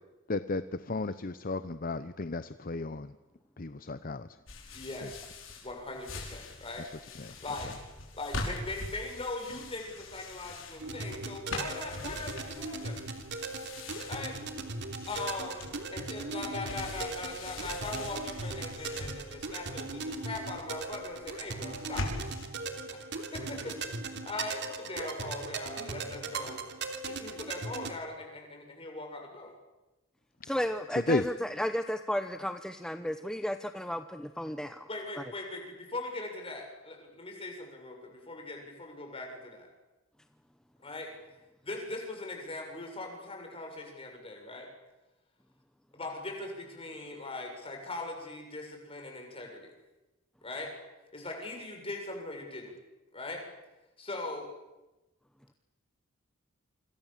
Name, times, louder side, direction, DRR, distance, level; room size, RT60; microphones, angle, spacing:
voice 1, 0.3-3.1 3.6-4.3 5.0-5.1 7.2-7.3 31.0-31.2, left 3 dB, 45° left, 12 dB, 0.8 m, -33 dB
sound 1, 4.5-22.5, left 2 dB, 70° left, 5.7 m, -43 dB
voice 2, 4.7-5.3 5.6-6.9 7.4-7.7 8.1-13.1 14.1-14.4 15.1-22.2 22.9-26.6 27.1-29.6 34.9-39.7 40.8-41.1 41.6-44.7 45.9-49.7 50.4-50.7 51.1-52.7 53.1-53.4 54.0-54.5, left 2 dB, 30° left, 2 dB, 7.1 m, -40 dB
sound 2, 10.8-27.9, right 3 dB, 60° right, 3.1 m, -39 dB
voice 3, 30.4-34.9, equal, 5° left, 8 dB, 0.9 m, -33 dB
28.0 x 26.5 x 7.5 m, 1.0 s
head